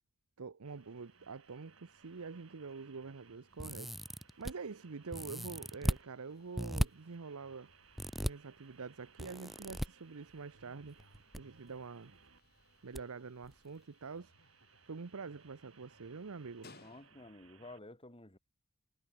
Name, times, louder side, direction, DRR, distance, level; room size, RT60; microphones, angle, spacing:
voice 1, 0.4-7.7 8.2-11.0 11.4-12.2 12.8-14.5 14.9-16.8, right 4 dB, 85° right, 0.7 m, -46 dB
sound 1, 0.6-17.8, right 5 dB, 65° right, 5.8 m, -65 dB
Old Fluorescent Fixture, 0.7-17.5, left 3 dB, 45° left, 7.0 m, -68 dB
sound 2, 3.6-4.5 5.1-6.0 6.6-6.9 8.0-8.3 9.2-9.9 11.0-11.4 11.7-11.8 12.9-13.0 13.4-13.5, equal, ahead, 0.3 m, -36 dB
voice 2, 16.8-18.4, left 2 dB, 25° left, 3.0 m, -52 dB
head